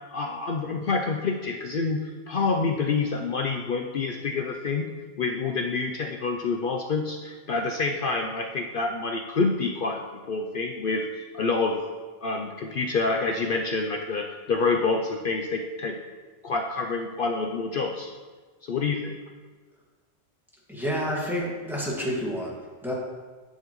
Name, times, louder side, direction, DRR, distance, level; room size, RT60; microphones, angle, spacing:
voice 1, 0.1-4.9 5.2-11.8 12.2-16.0 16.4-18.1 18.6-19.2, left 4 dB, 60° left, 3 dB, 0.7 m, -27 dB
voice 2, 20.7-22.9, equal, ahead, -5 dB, 1.7 m, -29 dB
9.9 x 7.4 x 3.0 m, 1.4 s
omnidirectional pair, 1.2 m